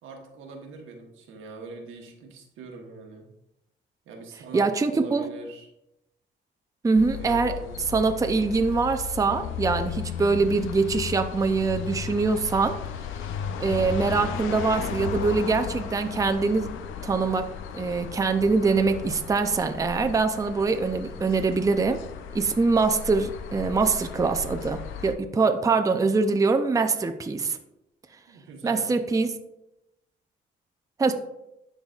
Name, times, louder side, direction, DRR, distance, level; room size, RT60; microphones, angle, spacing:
voice 1, 0.0-3.3 4.0-5.7 7.2-7.8 26.1-26.2 28.3-28.9, right 3 dB, 85° right, 2 dB, 1.2 m, -42 dB
voice 2, 4.5-5.2 6.8-7.5 7.9-12.8 13.6-16.7 17.0-17.5 17.7-22.0 22.3-27.6 28.6-29.3 31.0-31.1, right 4 dB, 15° right, 7 dB, 0.5 m, -23 dB
sound 1, 7.0-25.2, left 8 dB, 85° left, 0.5 m, -35 dB
11.0 x 4.0 x 2.4 m, 0.88 s
cardioid pair, 90°, 20 cm